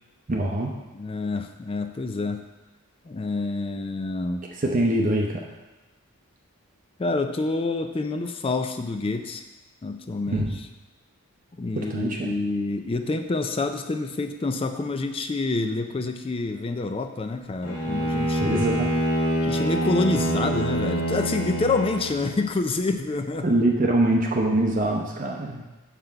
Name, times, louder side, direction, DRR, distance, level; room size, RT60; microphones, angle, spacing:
voice 1, 0.3-0.7 4.6-5.5 10.3-10.6 11.7-12.3 18.4-18.9 23.4-25.6, right 1 dB, 35° right, 0 dB, 0.6 m, -23 dB
voice 2, 0.9-2.4 3.1-4.5 7.0-9.4 9.8-10.6 11.6-18.6 19.4-23.5, left 3 dB, 25° left, 7 dB, 0.4 m, -27 dB
Bowed string instrument, 17.6-22.5, right 1 dB, 70° left, 2.0 m, -26 dB
6.5 x 5.9 x 4.5 m, 1.1 s
head